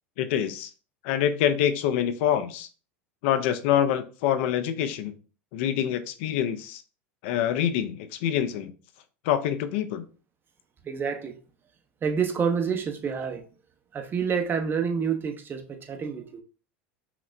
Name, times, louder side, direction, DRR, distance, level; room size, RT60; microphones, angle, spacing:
voice 1, 0.2-0.7 1.0-2.7 3.2-5.1 5.5-6.8 7.2-8.7 9.2-10.0, left 10 dB, 65° left, 0.5 m, -25 dB
voice 2, 10.8-11.3 12.0-13.4 13.9-16.4, right 6 dB, 30° right, 0.8 m, -28 dB
5.7 x 2.1 x 2.5 m
hypercardioid pair, 85°, 7 cm